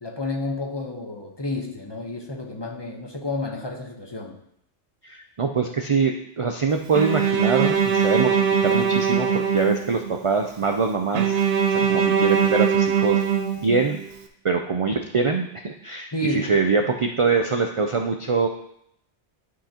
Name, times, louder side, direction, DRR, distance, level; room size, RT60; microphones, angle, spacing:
voice 1, 0.0-4.4 11.8-12.0 16.1-16.6, left 2 dB, 25° left, 1 dB, 0.9 m, -30 dB
voice 2, 5.0-11.4 11.7-13.2 13.6-14.0 14.4-18.5, right 4 dB, 50° right, 4 dB, 0.3 m, -24 dB
Bowed string instrument, 6.9-10.2 11.1-14.1, right 7 dB, 85° right, 1.1 m, -22 dB
11.5 x 5.6 x 2.9 m, 0.75 s
omnidirectional pair, 1.2 m